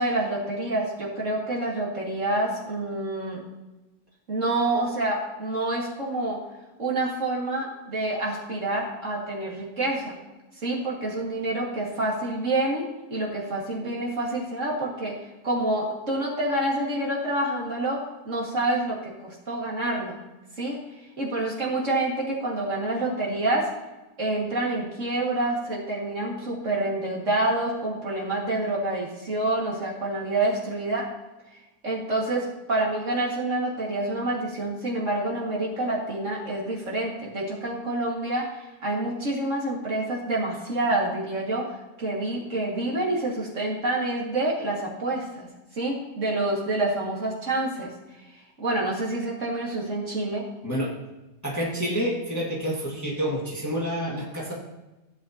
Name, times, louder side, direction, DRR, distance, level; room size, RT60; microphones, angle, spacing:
voice 1, 0.0-3.4 4.3-6.4 6.8-10.1 10.6-12.8 13.1-15.1 15.4-18.0 18.2-20.2 20.6-20.8 21.2-23.6 24.2-31.0 31.8-41.6 42.0-45.5 45.8-47.9 48.6-50.4, right 2 dB, 45° right, -4 dB, 2.2 m, -27 dB
voice 2, 51.4-54.5, equal, 10° left, -4 dB, 1.7 m, -28 dB
15.5 x 8.4 x 2.8 m, 1.1 s
omnidirectional pair, 1.8 m